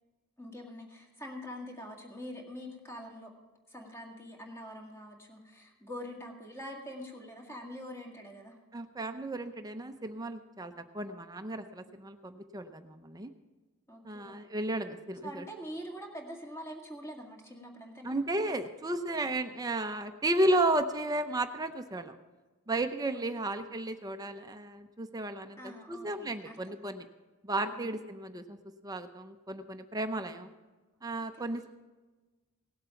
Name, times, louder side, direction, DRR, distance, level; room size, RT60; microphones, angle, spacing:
voice 1, 0.4-3.3 3.7-8.6 13.9-14.4 15.2-18.2 23.1-23.6 25.6-26.9 27.7-27.9 31.2-31.3, equal, 10° left, 0 dB, 1.9 m, -45 dB
voice 2, 8.7-13.3 14.0-15.5 18.0-22.1 22.7-27.1 27.4-28.6 28.8-30.5 31.0-31.7, right 1 dB, 15° right, 7 dB, 0.6 m, -33 dB
18.5 x 8.0 x 5.7 m, 1.2 s
head